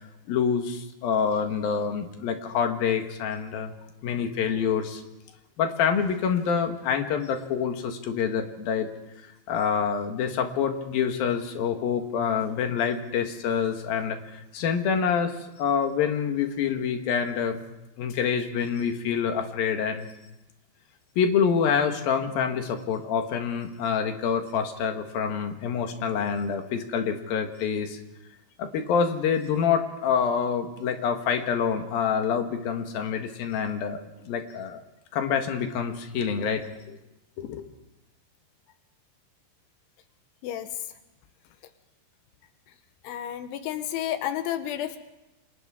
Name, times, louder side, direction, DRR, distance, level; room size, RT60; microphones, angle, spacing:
voice 1, 0.3-3.7 4.0-5.0 5.6-8.9 9.5-17.6 18.0-20.1 21.2-28.0 28.6-34.0 34.3-34.8 35.1-37.0 37.4-37.6, left 7 dB, 60° left, 5 dB, 2.8 m, -26 dB
voice 2, 43.1-45.0, left 11 dB, 85° left, 8 dB, 3.4 m, -31 dB
30.0 x 26.0 x 3.7 m, 0.96 s
omnidirectional pair, 5.4 m